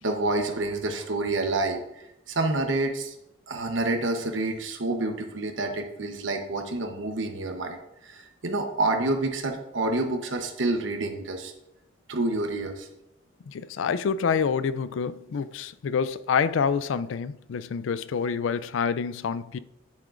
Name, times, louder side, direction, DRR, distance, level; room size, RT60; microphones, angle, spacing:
voice 1, 0.0-3.1 3.5-11.5 12.1-12.9, right 2 dB, 75° right, 1.0 m, -28 dB
voice 2, 13.5-19.6, left 6 dB, 80° left, 0.4 m, -27 dB
9.7 x 7.4 x 2.5 m
head